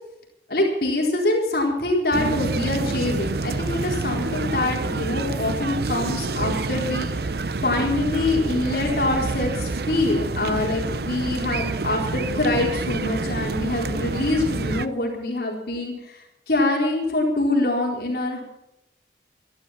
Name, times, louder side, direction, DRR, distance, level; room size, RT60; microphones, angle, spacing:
voice 1, 0.5-7.3 7.6-16.2 16.5-18.4, left 2 dB, 60° left, -1 dB, 4.2 m, -24 dB
sound 1, 2.1-14.9, right 3 dB, 60° right, 0.7 m, -27 dB
13.5 x 11.5 x 7.3 m, 0.84 s
head